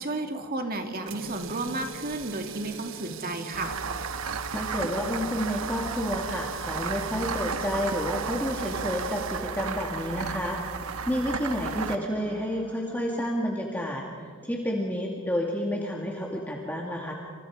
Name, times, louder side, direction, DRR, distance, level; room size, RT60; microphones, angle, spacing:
voice 1, 0.0-3.8, right 2 dB, 45° right, 4 dB, 2.3 m, -32 dB
sound 1, 1.0-11.1, right 7 dB, 60° right, 0.9 m, -42 dB
sound 2, 3.5-12.9, right 5 dB, 85° right, 1.2 m, -34 dB
voice 2, 4.5-10.6 11.1-17.1, equal, 10° left, -1 dB, 2.1 m, -30 dB
27.5 x 27.0 x 4.9 m, 2.2 s
head